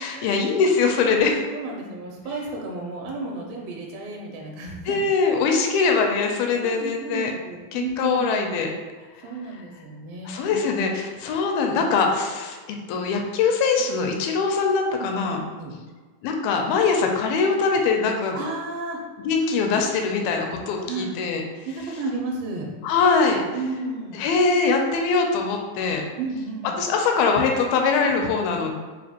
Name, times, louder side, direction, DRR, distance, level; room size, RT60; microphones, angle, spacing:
voice 1, 0.0-1.4 4.9-7.3 7.7-8.7 10.3-12.6 12.9-15.4 16.2-18.4 19.3-21.4 22.8-23.4 24.1-26.0 26.8-28.7, left 4 dB, 85° left, 2 dB, 2.4 m, -22 dB
voice 2, 1.5-5.0 6.6-8.5 9.2-10.6 15.0-15.1 15.6-15.7 18.3-19.0 20.8-21.1 21.7-22.7 23.5-24.2 26.2-26.8 28.6-28.7, right 3 dB, 80° right, -1 dB, 2.4 m, -33 dB
5.9 x 2.4 x 2.8 m, 1.4 s
omnidirectional pair, 4.4 m